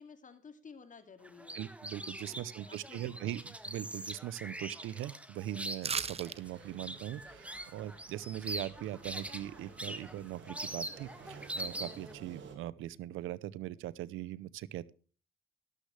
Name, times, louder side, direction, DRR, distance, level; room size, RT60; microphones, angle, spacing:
voice 1, 0.0-1.6 2.2-3.3, left 5 dB, 40° left, 8 dB, 2.5 m, -54 dB
sound 1, 1.2-12.1, right 1 dB, 5° right, 1.8 m, -43 dB
voice 2, 1.5-3.4 3.6-14.9, right 13 dB, 90° right, 20 dB, 0.7 m, -41 dB
sound 2, 5.8-6.4 6.7-6.8, right 5 dB, 30° right, 0.8 m, -35 dB
sound 3, 6.1-12.6, right 5 dB, 70° right, 3.6 m, -54 dB
13.0 x 13.0 x 3.3 m, 0.38 s
cardioid pair, 90°, 20 cm